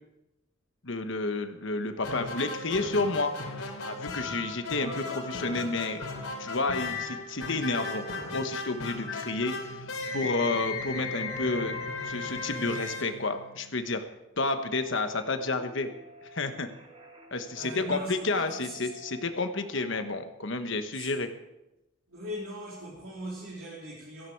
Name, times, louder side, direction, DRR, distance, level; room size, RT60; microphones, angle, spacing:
voice 1, 0.8-3.3 3.8-6.1 6.4-8.1 8.3-11.8 12.0-14.0 14.4-15.9 16.2-16.7 17.3-21.3, left 3 dB, 60° left, 8 dB, 1.2 m, -30 dB
sound 1, 2.0-13.9, left 3 dB, 90° left, 3.1 m, -36 dB
sound 2, 14.4-20.1, equal, 30° right, 3.2 m, -51 dB
voice 2, 17.5-18.9 20.9-21.1 22.1-24.3, right 1 dB, 75° right, -6 dB, 3.9 m, -39 dB
17.0 x 14.5 x 4.7 m, 0.95 s
head